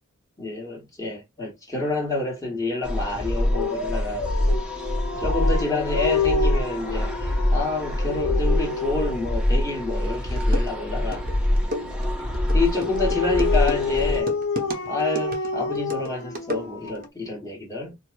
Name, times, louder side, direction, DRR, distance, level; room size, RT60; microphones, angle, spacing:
voice 1, 0.4-4.2 5.2-11.3 12.5-14.4 14.9-18.0, left 3 dB, 15° left, 1.2 m, -28 dB
sound 1, 2.8-14.2, left 1 dB, 5° right, 0.6 m, -25 dB
Dog, 3.5-9.3 12.5-17.1, left 4 dB, 70° left, 0.7 m, -29 dB
sound 2, 9.9-10.0 10.4-17.1, equal, 40° right, 0.8 m, -34 dB
4.5 x 2.0 x 2.3 m
head